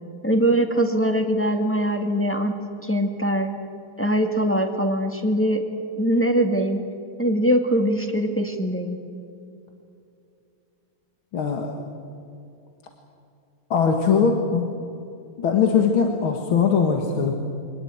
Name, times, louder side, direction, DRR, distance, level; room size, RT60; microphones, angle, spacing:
voice 1, 0.2-3.5 4.0-5.6 6.0-6.8 7.2-9.0, right 1 dB, 5° left, 3 dB, 1.8 m, -22 dB
voice 2, 11.3-11.9 13.7-14.7 15.4-17.3, left 6 dB, 75° left, 3 dB, 2.5 m, -21 dB
24.5 x 18.5 x 9.4 m, 2.5 s
omnidirectional pair, 2.3 m